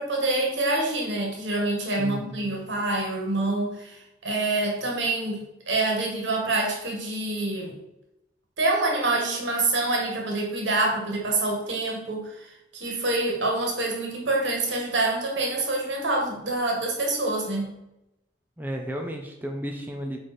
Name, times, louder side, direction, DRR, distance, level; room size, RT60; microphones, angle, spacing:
voice 1, 0.0-7.8 8.6-17.7, right 2 dB, 80° right, 0 dB, 1.8 m, -26 dB
voice 2, 2.0-2.5 18.6-20.2, equal, 10° right, 2 dB, 0.6 m, -33 dB
9.0 x 3.3 x 4.3 m, 0.91 s
head